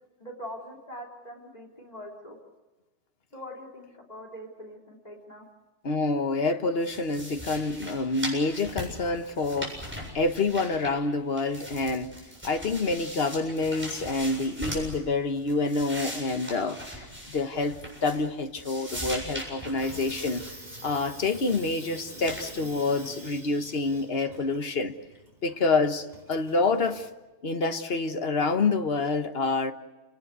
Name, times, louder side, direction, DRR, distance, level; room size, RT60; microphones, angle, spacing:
voice 1, 0.2-2.4 3.3-5.4, equal, 35° left, 3.4 m, -43 dB
voice 2, 5.8-9.8 10.1-12.1 12.4-20.5 20.8-24.9 25.4-27.1 27.4-29.7, left 3 dB, 55° left, 1.5 m, -27 dB
sound 1, 6.8-11.1 11.4-15.0 15.4-18.3 18.6-20.8 21.2-21.7 22.2-22.5, equal, 10° right, 7.7 m, -39 dB
Water tap faucet / Sink (filling or washing), 19.5-27.1, right 1 dB, 35° right, 4.3 m, -46 dB
29.5 x 19.0 x 8.2 m
omnidirectional pair, 1.2 m